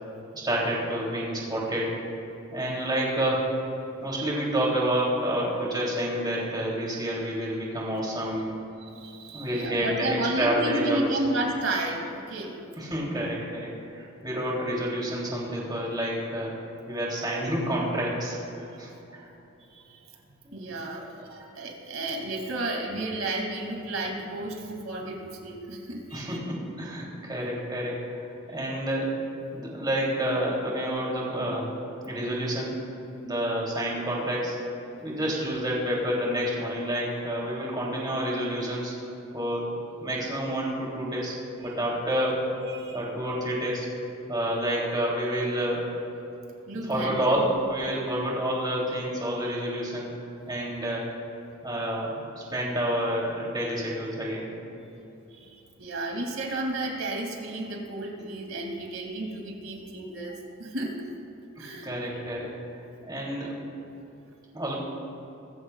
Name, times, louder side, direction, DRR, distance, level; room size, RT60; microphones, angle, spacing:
voice 1, 0.3-2.0 2.5-3.5 4.0-8.6 9.3-11.1 12.7-16.5 16.9-19.3 20.4-20.6 21.0-21.1 26.1-29.2 29.5-31.7 32.0-32.7 33.2-34.6 35.0-38.9 39.3-39.7 40.0-42.4 42.9-43.9 44.3-45.8 46.7-50.1 50.5-51.1 51.6-54.5 61.6-62.5 63.0-63.6 64.5-64.7, right 1 dB, 20° right, -4 dB, 3.1 m, -29 dB
voice 2, 8.8-12.7 18.6-18.8 19.7-20.0 20.5-26.3 41.6-41.7 42.7-43.0 46.7-47.5 49.4-49.5 55.3-61.1 61.6-61.9, right 1 dB, 75° right, 1 dB, 2.5 m, -32 dB
21.0 x 15.0 x 2.4 m, 2.9 s
head